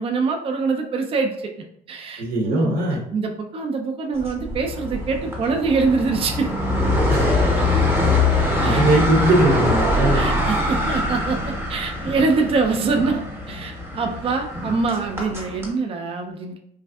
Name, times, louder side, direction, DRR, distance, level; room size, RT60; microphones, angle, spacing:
voice 1, 0.0-1.3 1.9-2.8 3.1-6.5 8.6-8.8 10.1-16.6, right 4 dB, 35° right, 4 dB, 0.4 m, -24 dB
voice 2, 2.2-3.0 7.1-7.3 8.0-8.1 8.4-10.3, right 1 dB, 65° right, 1 dB, 0.8 m, -20 dB
sound 1, 4.2-15.7, left 2 dB, 15° right, 0.8 m, -23 dB
3.1 x 2.5 x 2.3 m, 0.71 s
cardioid pair, 110°, 17 cm